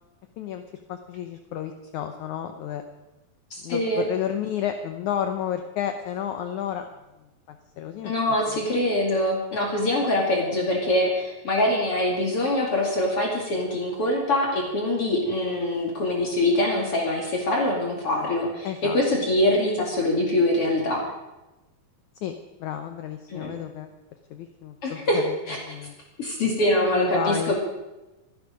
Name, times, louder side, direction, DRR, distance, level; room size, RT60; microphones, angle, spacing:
voice 1, 0.9-2.8 3.6-6.9 7.5-8.6 18.6-19.0 22.2-22.3 22.6-23.9 24.3-25.4 25.6-25.9 26.7-27.5, left 9 dB, 70° left, 7 dB, 2.0 m, -31 dB
voice 2, 3.5-4.0 8.0-21.0 23.3-23.5 24.8-25.2 25.5-25.6 26.2-27.6, left 1 dB, 40° left, -1 dB, 3.0 m, -24 dB
26.5 x 10.5 x 5.2 m, 1.0 s
omnidirectional pair, 4.1 m